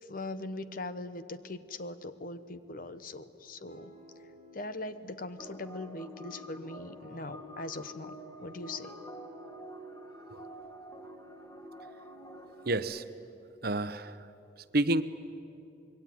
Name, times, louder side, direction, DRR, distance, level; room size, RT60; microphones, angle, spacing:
voice 1, 0.1-3.9 4.5-8.9, left 2 dB, 50° left, 12 dB, 1.1 m, -41 dB
sound 1, 3.7-10.5, right 1 dB, 90° left, 7.8 m, -53 dB
sound 2, 5.4-12.8, equal, 15° left, 1.8 m, -48 dB
voice 2, 12.7-13.0 13.6-14.2 14.7-15.0, right 2 dB, 55° right, 12 dB, 1.0 m, -29 dB
26.5 x 22.0 x 9.5 m, 2.9 s
head